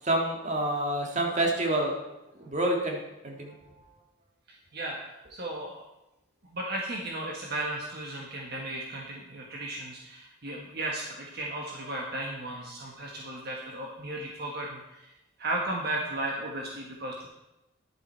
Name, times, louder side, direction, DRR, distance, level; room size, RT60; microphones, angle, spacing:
voice 1, 0.0-3.5, right 1 dB, 35° right, 0 dB, 1.8 m, -28 dB
voice 2, 5.2-5.8 6.5-15.1 15.4-17.3, right 1 dB, 55° right, -1 dB, 1.3 m, -35 dB
11.5 x 7.5 x 4.4 m, 0.94 s
head